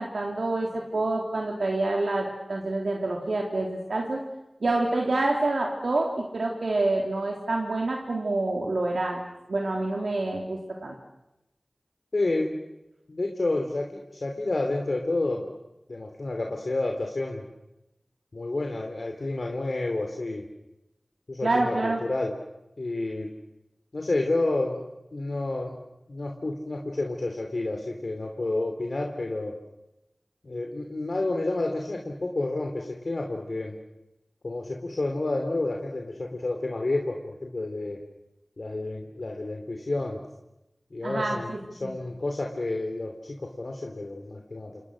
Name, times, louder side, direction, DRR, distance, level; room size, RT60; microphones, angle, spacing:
voice 1, 0.0-4.2 4.6-9.2 9.5-11.0 21.4-22.0 41.0-41.9, right 2 dB, 90° right, 0 dB, 3.5 m, -27 dB
voice 2, 12.1-12.5 13.1-15.5 15.9-17.4 18.3-20.5 21.3-22.3 22.8-23.3 23.9-24.8 25.1-25.8 26.1-29.5 30.4-33.8 34.4-38.0 38.6-40.2 40.9-44.8, left 2 dB, 70° left, 2 dB, 3.1 m, -30 dB
30.0 x 28.5 x 6.5 m, 0.93 s
wide cardioid pair, 40°, 0 cm